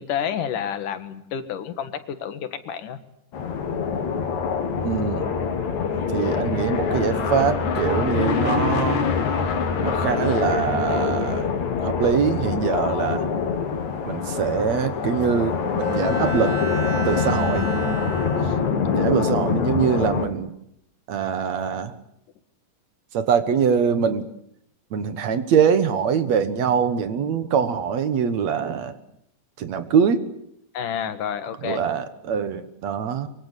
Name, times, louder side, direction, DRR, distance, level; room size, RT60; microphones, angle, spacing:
voice 1, 0.0-3.0 30.7-31.8, left 8 dB, 80° left, 11 dB, 3.2 m, -29 dB
sound 1, 3.3-20.3, left 5 dB, 65° left, 3.5 m, -24 dB
voice 2, 4.8-5.3 6.1-9.1 9.8-11.5 11.8-13.3 14.1-16.5 17.0-17.7 18.9-20.5 21.1-21.9 23.1-24.3 24.9-29.0 29.6-30.2 31.6-33.3, right 7 dB, 60° right, 11 dB, 2.5 m, -23 dB
Bowed string instrument, 15.8-19.0, right 2 dB, 20° right, 0.7 m, -32 dB
24.0 x 23.5 x 8.3 m, 0.74 s
omnidirectional pair, 3.6 m